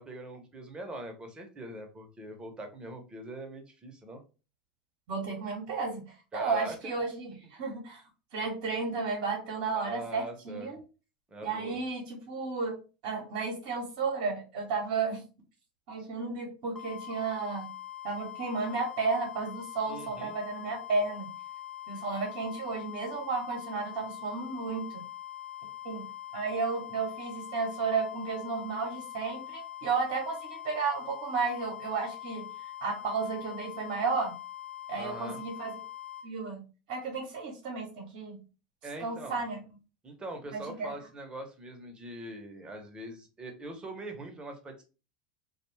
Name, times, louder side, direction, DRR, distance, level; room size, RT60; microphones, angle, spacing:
voice 1, 0.0-4.2 6.3-6.9 9.7-10.8 11.3-11.8 19.9-20.3 35.0-35.4 38.8-39.4 40.0-44.9, right 2 dB, 20° right, 4 dB, 0.9 m, -42 dB
voice 2, 5.1-8.0 8.3-10.8 11.4-12.8 13.0-15.2 15.9-17.7 18.0-21.3 21.9-25.0 25.8-26.1 26.3-30.4 30.6-34.3 34.9-35.8 36.2-38.4 39.0-39.6 40.5-40.9, right 4 dB, 60° right, -1 dB, 0.9 m, -33 dB
sound 1, 16.8-36.3, left 12 dB, 10° left, 0.7 m, -43 dB
2.3 x 2.3 x 3.2 m, 0.33 s
hypercardioid pair, 90°, 4 cm